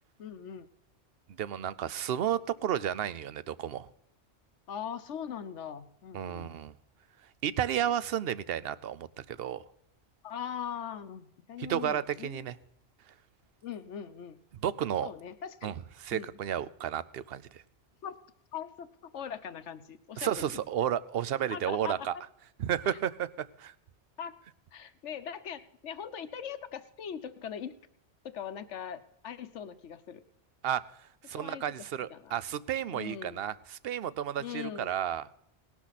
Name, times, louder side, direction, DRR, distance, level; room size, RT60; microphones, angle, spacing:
voice 1, 0.2-0.7 4.7-6.5 10.2-12.5 13.6-14.4 15.0-15.7 16.1-16.4 18.0-18.1 18.5-18.9 19.1-20.6 21.5-21.9 22.8-23.0 24.2-24.3 24.7-27.8 28.2-30.2 31.3-31.6 32.1-32.3 32.9-33.4 34.4-34.9, left 8 dB, 85° left, 11 dB, 1.2 m, -40 dB
voice 2, 1.3-3.9 6.1-6.7 7.4-9.6 11.6-12.6 14.6-15.1 15.6-17.6 20.2-22.1 22.6-23.3 23.6-23.7 30.6-30.8 31.3-35.3, right 10 dB, 60° right, 18 dB, 0.9 m, -32 dB
19.0 x 12.0 x 4.1 m, 0.71 s
omnidirectional pair, 1.2 m